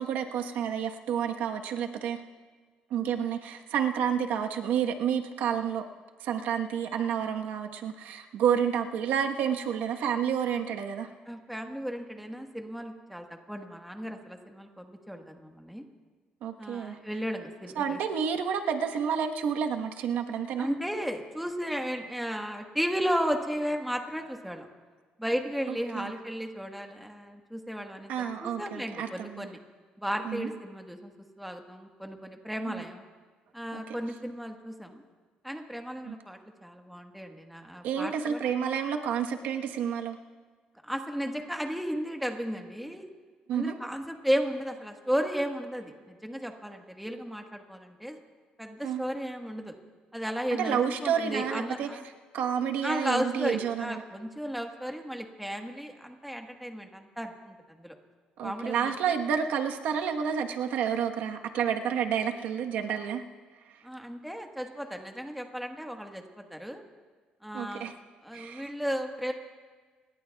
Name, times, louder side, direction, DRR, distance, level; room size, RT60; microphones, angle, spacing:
voice 1, 0.0-2.2 2.9-5.8 6.2-11.1 16.4-17.0 17.8-20.7 25.7-26.1 28.1-29.5 30.2-30.5 32.6-32.8 33.7-33.8 36.0-36.1 37.8-40.2 43.5-43.7 48.8-49.0 50.6-51.9 52.3-54.0 58.4-63.2 67.5-67.9 68.3-68.7, right 8 dB, 80° right, 4 dB, 1.2 m, -30 dB
voice 2, 11.3-15.8 16.6-18.0 20.6-24.7 25.2-29.6 30.0-31.1 31.4-33.0 33.5-35.0 35.4-38.4 40.8-43.1 43.5-48.2 48.6-49.7 50.1-52.0 52.8-57.9 58.4-59.2 63.8-66.8 67.4-69.3, equal, ahead, 3 dB, 1.4 m, -34 dB
27.5 x 21.0 x 2.3 m, 1.5 s
cardioid pair, 140°, 3 cm